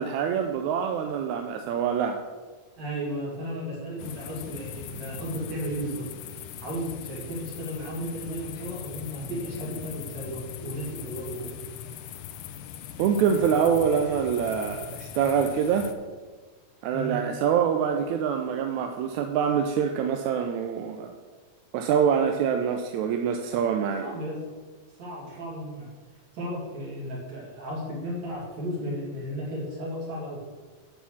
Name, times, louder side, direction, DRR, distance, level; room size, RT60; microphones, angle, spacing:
voice 1, 0.0-2.2 13.0-15.9 16.8-21.1 21.7-24.1, right 7 dB, 80° right, 5 dB, 1.9 m, -25 dB
voice 2, 2.8-6.1 6.6-11.5 16.9-17.2 24.0-24.4 25.0-25.9 26.3-30.4, equal, 60° right, -4 dB, 3.9 m, -34 dB
sound 1, 4.0-15.9, left 9 dB, 85° left, 2.1 m, -40 dB
10.0 x 4.6 x 7.3 m, 1.4 s
omnidirectional pair, 3.5 m